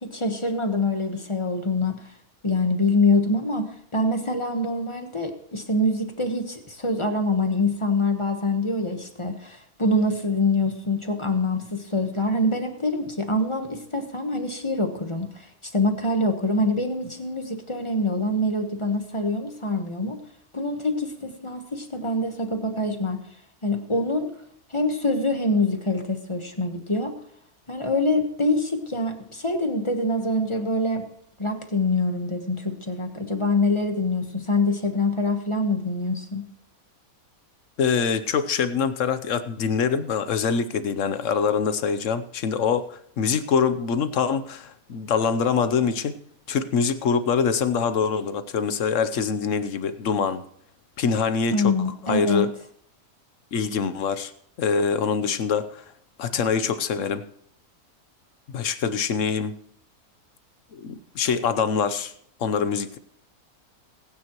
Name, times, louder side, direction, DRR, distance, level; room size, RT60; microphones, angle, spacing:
voice 1, 0.0-2.0 2.4-20.2 20.5-23.2 23.6-24.3 24.7-27.2 27.7-31.1 31.4-36.4 51.5-52.5, left 2 dB, 20° left, 5 dB, 1.2 m, -25 dB
voice 2, 37.8-46.2 46.5-50.4 51.0-51.7 52.1-52.5 53.5-54.3 54.6-55.8 56.2-57.2 58.5-59.6 60.7-62.1 62.4-63.0, left 6 dB, 60° left, 11 dB, 1.1 m, -24 dB
20.0 x 9.5 x 3.0 m, 0.67 s
omnidirectional pair, 1.6 m